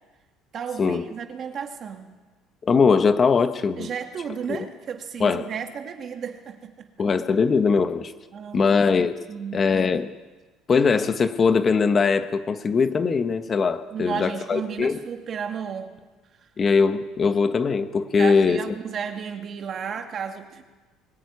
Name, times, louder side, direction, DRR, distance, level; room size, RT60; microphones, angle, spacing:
voice 1, 0.5-2.2 3.8-6.9 8.3-8.8 9.3-9.7 13.9-16.0 16.4-16.5 18.1-20.6, right 7 dB, 40° right, 5 dB, 2.3 m, -33 dB
voice 2, 2.6-3.9 4.5-4.6 5.2-5.4 7.0-8.1 8.5-9.1 9.5-10.1 10.7-15.0 16.6-18.6, left 5 dB, 30° left, 9 dB, 1.2 m, -21 dB
22.0 x 15.0 x 9.7 m, 1.2 s
cardioid pair, 130°, 0 cm